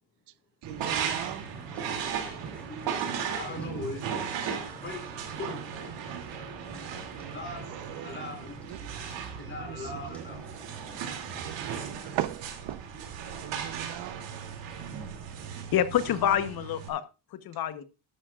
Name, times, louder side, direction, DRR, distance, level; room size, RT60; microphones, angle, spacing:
voice 1, 0.6-1.5 7.7-8.2 8.7-8.8 9.6-10.4 11.2-12.9 13.4-14.2 16.2-16.4, right 13 dB, 65° right, 0.9 m, -38 dB
sound 1, 0.6-16.9, right 7 dB, 80° right, 2.8 m, -36 dB
sound 2, 0.8-11.7, right 1 dB, 5° left, 2.9 m, -50 dB
voice 2, 2.7-5.1 5.4-5.9 7.3-8.6 9.4-10.4, left 3 dB, 25° left, 4.0 m, -41 dB
voice 3, 15.7-17.0 17.3-17.8, left 10 dB, 55° left, 1.1 m, -27 dB
12.5 x 12.0 x 2.4 m
cardioid pair, 155°, 44 cm